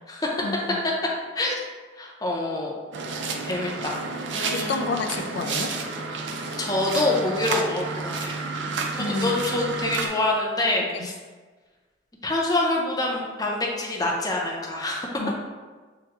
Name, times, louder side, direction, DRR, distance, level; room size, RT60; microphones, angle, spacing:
voice 1, 0.4-0.8 4.5-5.7 9.0-9.4 15.2-15.3, left 3 dB, 65° left, 6 dB, 0.4 m, -29 dB
voice 2, 2.0-2.7 3.4-4.0 4.3-5.5 6.6-8.4 8.9-11.1 12.2-15.1, left 2 dB, 20° left, -2 dB, 0.6 m, -26 dB
sound 1, 2.9-10.1, right 4 dB, 75° right, 0.4 m, -31 dB
6.5 x 2.2 x 2.8 m, 1.4 s
head